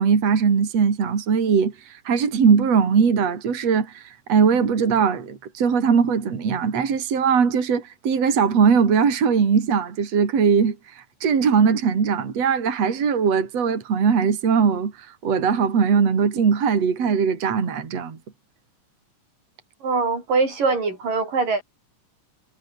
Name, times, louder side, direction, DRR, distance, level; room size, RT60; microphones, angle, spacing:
voice 1, 0.0-18.2, right 6 dB, 50° right, 4.2 m, -20 dB
voice 2, 19.8-21.6, right 4 dB, 85° right, 8.9 m, -22 dB
omnidirectional pair, 3.7 m